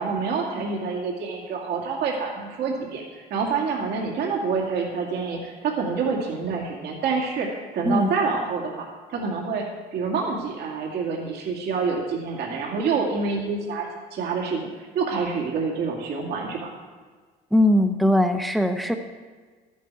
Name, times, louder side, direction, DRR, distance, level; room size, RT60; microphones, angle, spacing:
voice 1, 0.0-9.6 9.9-16.7, right 5 dB, 75° right, -1 dB, 2.3 m, -27 dB
voice 2, 17.5-18.9, left 1 dB, ahead, 5 dB, 0.8 m, -20 dB
12.5 x 10.5 x 4.7 m, 1.5 s
cardioid pair, 110°, 17 cm